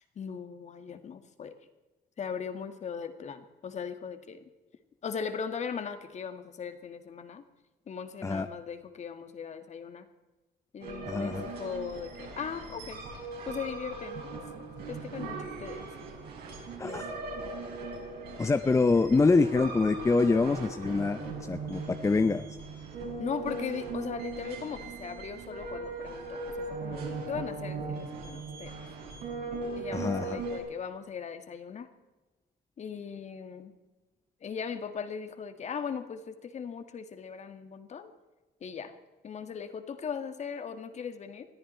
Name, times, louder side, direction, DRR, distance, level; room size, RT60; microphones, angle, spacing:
voice 1, 0.0-1.5 2.2-4.4 5.0-7.4 7.9-10.1 10.7-13.0 13.5-14.3 14.9-15.9 16.8-17.1 23.2-28.8 29.7-31.9 32.8-33.8 34.4-38.1 38.6-38.9 39.2-41.5, left 6 dB, 45° left, 9 dB, 1.9 m, -39 dB
sound 1, 10.8-30.6, right 3 dB, 70° right, 6.2 m, -39 dB
voice 2, 11.1-11.5 16.8-17.1 18.4-22.4 29.9-30.4, left 3 dB, 20° left, 10 dB, 0.7 m, -25 dB
21.0 x 13.5 x 4.4 m, 1.1 s
cardioid pair, 110°, 17 cm